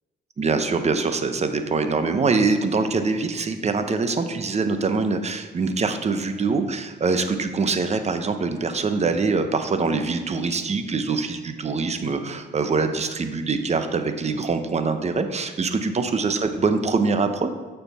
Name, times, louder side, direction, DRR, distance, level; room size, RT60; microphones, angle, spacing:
voice 1, 0.4-17.5, right 4 dB, 35° right, 8 dB, 0.9 m, -24 dB
9.1 x 6.8 x 4.2 m, 1.3 s
cardioid pair, 90°, 20 cm